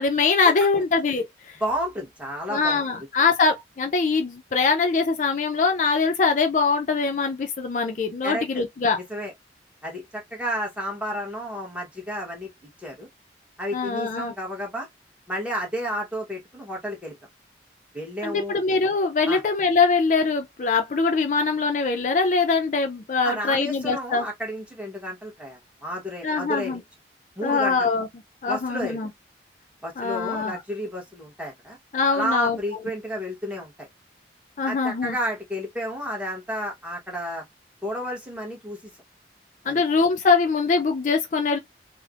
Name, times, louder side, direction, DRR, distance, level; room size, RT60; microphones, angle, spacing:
voice 1, 0.0-1.6 2.5-9.0 13.7-14.3 18.2-24.3 26.2-26.8 27.4-28.1 28.4-29.1 30.0-30.6 31.9-32.6 34.6-35.2 39.7-41.6, left 4 dB, 45° left, 0.4 m, -23 dB
voice 2, 1.6-2.8 8.2-8.6 9.1-9.3 9.8-12.5 12.8-13.1 13.6-14.9 15.3-17.1 17.9-18.5 19.3-19.4 23.2-26.8 27.4-27.9 28.5-29.0 29.8-31.8 32.1-33.9 34.7-37.4 37.8-38.8 39.6-39.8, equal, 5° right, 0.9 m, -31 dB
3.2 x 2.0 x 2.3 m
head